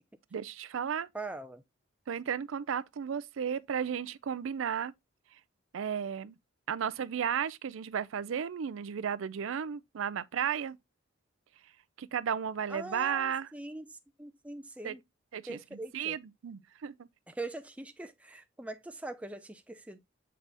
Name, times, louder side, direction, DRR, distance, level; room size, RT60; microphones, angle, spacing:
voice 1, 0.3-1.1 2.1-4.9 5.7-6.4 6.7-10.8 12.0-13.5 14.8-14.9 15.3-15.6 15.9-17.1, right 7 dB, 75° right, 0.4 m, -34 dB
voice 2, 1.1-1.6 12.7-15.0 15.5-16.2 17.3-20.0, right 2 dB, 5° right, 0.5 m, -42 dB
7.4 x 4.1 x 3.4 m
head